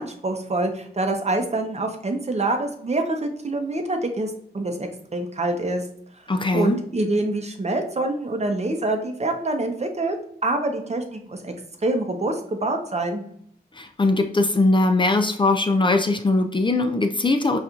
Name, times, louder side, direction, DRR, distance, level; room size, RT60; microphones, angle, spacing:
voice 1, 0.0-5.8 6.5-10.2 10.4-11.5 11.8-13.2, right 2 dB, 40° right, 5 dB, 0.7 m, -26 dB
voice 2, 6.3-6.8 13.8-17.6, left 2 dB, 30° left, 7 dB, 0.4 m, -20 dB
4.3 x 2.4 x 2.4 m, 0.68 s
cardioid pair, 45°, 17 cm